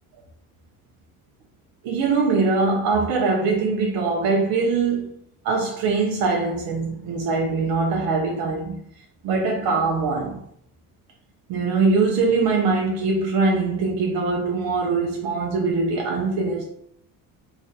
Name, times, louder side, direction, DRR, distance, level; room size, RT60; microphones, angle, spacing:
voice 1, 1.8-5.1 5.4-8.7 9.2-10.4 11.5-16.6, right 4 dB, 80° right, 0.6 m, -22 dB
2.5 x 2.2 x 3.9 m
cardioid pair, 160°, 35 cm